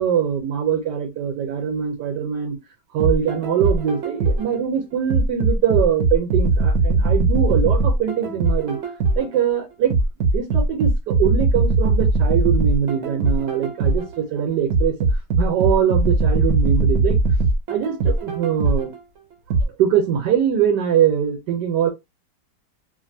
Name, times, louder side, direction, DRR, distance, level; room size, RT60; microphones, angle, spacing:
voice 1, 0.0-2.6 2.9-8.8 9.1-9.9 10.3-14.9 15.4-17.2 17.7-18.9 19.8-21.9, right 8 dB, 85° right, 1.3 m, -22 dB
sound 1, 3.0-4.6 5.1-9.4 9.9-14.2 14.7-19.0 19.5-19.6, right 3 dB, 60° right, 0.9 m, -20 dB
2.8 x 2.5 x 2.5 m
omnidirectional pair, 1.8 m